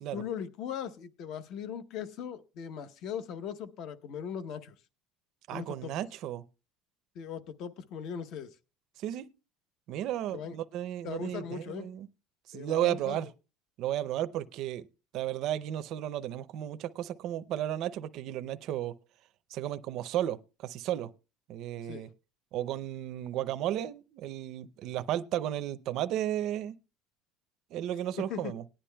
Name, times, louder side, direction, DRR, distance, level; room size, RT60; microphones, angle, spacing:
voice 1, 0.1-4.7 5.5-6.0 7.1-8.6 10.3-10.5 11.0-11.9 12.5-13.2 21.8-22.1 28.2-28.5, left 8 dB, 45° left, 0.8 m, -39 dB
voice 2, 5.5-6.4 9.0-9.3 9.9-12.1 12.5-13.3 13.8-14.9 15.1-18.9 19.5-21.1 21.5-22.1 22.5-26.8 27.7-28.6, right 12 dB, 45° right, 0.5 m, -33 dB
18.5 x 10.0 x 2.2 m
cardioid pair, 170°, 0 cm